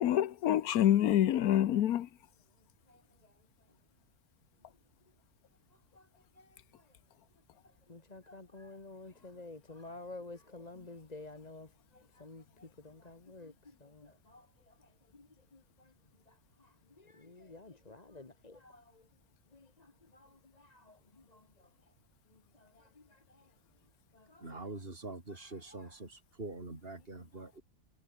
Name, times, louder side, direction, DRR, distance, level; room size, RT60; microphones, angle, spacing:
voice 1, 0.0-2.1, left 11 dB, 85° left, 1.3 m, -26 dB
voice 2, 6.4-6.8 7.9-15.9 16.3-19.0 19.5-21.7 22.3-23.5 24.1-24.7 25.3-26.0 27.3-27.5, left 2 dB, 30° left, 1.8 m, -52 dB
voice 3, 24.4-27.6, right 2 dB, 40° right, 4.4 m, -44 dB
omnidirectional pair, 1.5 m